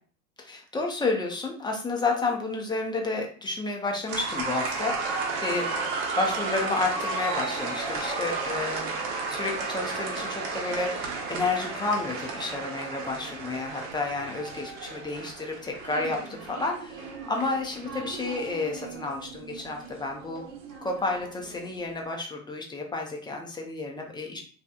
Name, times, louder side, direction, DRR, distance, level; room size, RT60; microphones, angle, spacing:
voice 1, 0.4-5.7 6.2-9.0 9.3-20.5 20.8-24.4, left 3 dB, 10° left, 1 dB, 0.5 m, -31 dB
sound 1, 4.1-21.7, right 4 dB, 55° right, 0.8 m, -34 dB
2.9 x 2.3 x 2.2 m, 0.42 s
hypercardioid pair, 95°, 42 cm